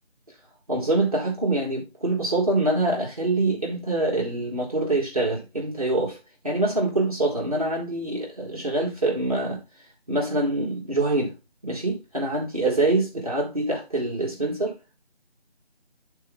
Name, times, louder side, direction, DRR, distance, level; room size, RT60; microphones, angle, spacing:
voice 1, 0.7-9.6 10.1-11.3 11.6-14.8, right 2 dB, 35° right, 1.2 m, -25 dB
10.5 x 4.0 x 3.5 m
figure-of-eight pair, 165°, 34 cm